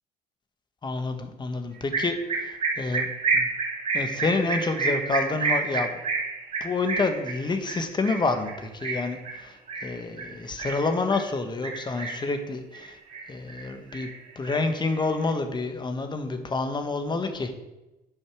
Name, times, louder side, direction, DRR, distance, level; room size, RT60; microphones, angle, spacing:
voice 1, 0.8-3.1 3.3-3.5 3.9-6.0 6.6-13.0 13.3-14.1 14.3-17.6, left 3 dB, 25° left, 7 dB, 1.3 m, -28 dB
sound 1, 1.9-11.3 11.6-12.4 12.7-13.7 13.9-15.3, right 4 dB, 40° right, 2.3 m, -30 dB
10.0 x 5.3 x 6.1 m, 1.0 s
cardioid pair, 110°, 17 cm